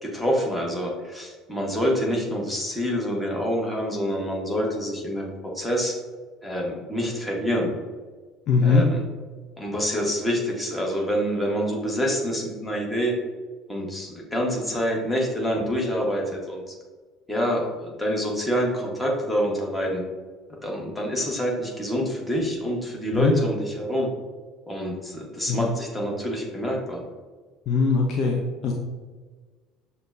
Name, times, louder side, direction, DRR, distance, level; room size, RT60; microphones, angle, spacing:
voice 1, 0.0-6.0 6.4-7.8 8.6-9.0 9.6-13.1 13.7-16.7 17.3-20.0 20.5-24.1 24.7-27.0, equal, 10° left, -2 dB, 1.1 m, -27 dB
voice 2, 8.5-8.8 23.1-23.3 25.5-25.7 27.7-28.7, left 4 dB, 50° left, 1 dB, 0.4 m, -21 dB
6.4 x 2.2 x 2.5 m, 1.4 s
figure-of-eight pair, 60°, 0 cm